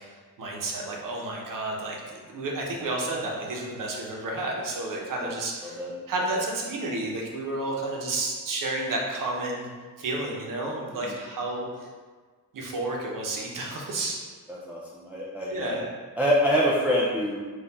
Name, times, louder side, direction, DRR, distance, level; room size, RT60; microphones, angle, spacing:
voice 1, 0.0-9.7 10.0-11.9 12.5-14.2 15.5-15.8, right 2 dB, 65° right, -1 dB, 0.8 m, -31 dB
voice 2, 14.5-15.8 16.2-17.4, equal, 5° right, -5 dB, 0.3 m, -25 dB
4.3 x 2.4 x 4.0 m, 1.5 s
wide cardioid pair, 165°, 35 cm